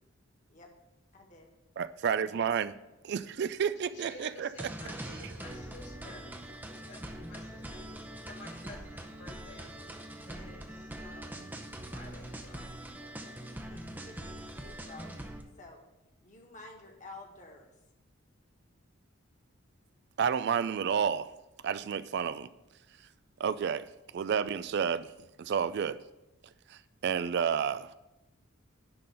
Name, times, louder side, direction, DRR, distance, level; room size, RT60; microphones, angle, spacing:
voice 1, 1.1-1.6 13.7-15.2 15.5-15.8 16.2-17.7, left 2 dB, 35° left, 1 dB, 1.6 m, -51 dB
voice 2, 1.8-2.7 3.0-4.7 20.2-21.3 21.6-22.5 23.4-25.1 25.4-26.0 26.7-28.0, right 7 dB, 55° right, 15 dB, 0.3 m, -30 dB
voice 3, 3.8-14.1, left 2 dB, 55° left, 0 dB, 2.2 m, -53 dB
sound 1, 4.6-15.4, right 1 dB, 10° right, 0.7 m, -43 dB
10.5 x 3.9 x 6.8 m, 0.96 s
head